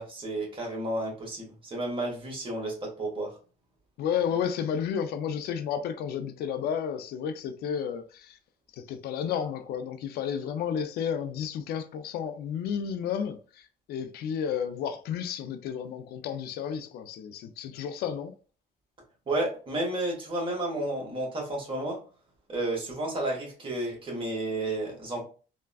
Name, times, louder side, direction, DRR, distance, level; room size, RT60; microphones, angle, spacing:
voice 1, 0.0-3.3 19.3-22.0 22.5-25.2, right 1 dB, 30° right, 1.4 m, -31 dB
voice 2, 4.0-8.4 8.8-18.3, left 8 dB, 70° left, 0.4 m, -32 dB
3.4 x 2.2 x 2.3 m
cardioid pair, 110°, 17 cm